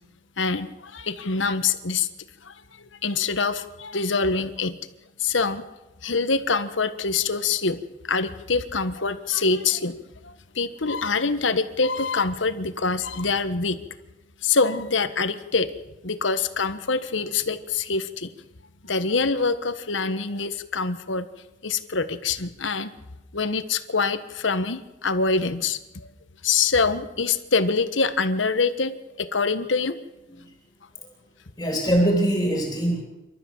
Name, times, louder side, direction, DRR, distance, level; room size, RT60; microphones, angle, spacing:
voice 1, 0.4-2.1 2.4-4.7 5.2-5.6 6.0-7.8 8.0-13.8 14.4-15.7 16.0-18.3 18.8-21.2 21.6-22.9 23.3-26.1 26.4-30.0, left 4 dB, 80° left, 11 dB, 1.4 m, -25 dB
voice 2, 31.6-33.0, right 1 dB, 20° left, 1 dB, 3.2 m, -23 dB
29.0 x 13.0 x 7.3 m, 1.0 s
head